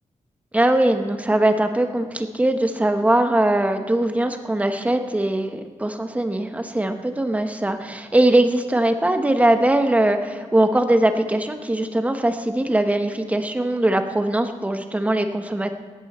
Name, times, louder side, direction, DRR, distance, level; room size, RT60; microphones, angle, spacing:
voice 1, 0.5-15.7, right 1 dB, 10° right, 7 dB, 1.0 m, -21 dB
17.5 x 14.0 x 4.3 m, 1.5 s
wide cardioid pair, 140°, 13 cm